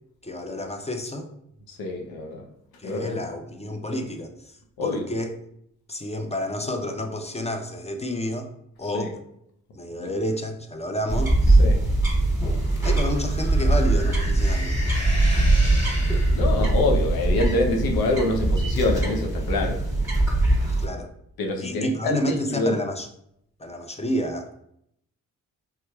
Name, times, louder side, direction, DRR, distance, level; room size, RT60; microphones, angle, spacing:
voice 1, 0.2-1.3 2.8-5.4 5.9-8.5 8.8-9.2 9.7-11.6 12.8-14.8 20.8-21.1 21.6-23.1 23.6-24.5, equal, 20° left, 5 dB, 0.6 m, -30 dB
voice 2, 1.7-2.4 2.8-3.2 4.8-5.0 8.9-9.1 10.0-10.1 11.6-11.8 16.3-19.8 21.4-22.8, left 2 dB, 75° left, 2 dB, 0.7 m, -26 dB
sound 1, 11.1-20.9, right 2 dB, 10° right, 1.3 m, -21 dB
sound 2, 12.4-16.7, left 1 dB, 45° left, 1.3 m, -36 dB
3.4 x 2.8 x 2.3 m, 0.73 s
supercardioid pair, 40°, 36 cm